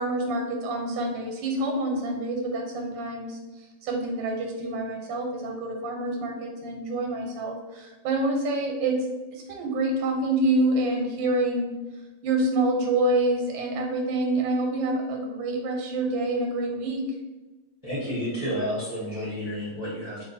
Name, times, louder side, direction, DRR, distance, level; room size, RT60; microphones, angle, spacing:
voice 1, 0.0-3.4 3.8-9.0 9.3-11.7 12.2-17.0, right 2 dB, 90° right, 2 dB, 1.3 m, -27 dB
voice 2, 17.8-20.2, equal, 20° right, -8 dB, 0.6 m, -30 dB
2.7 x 2.6 x 4.0 m, 1.1 s
omnidirectional pair, 2.0 m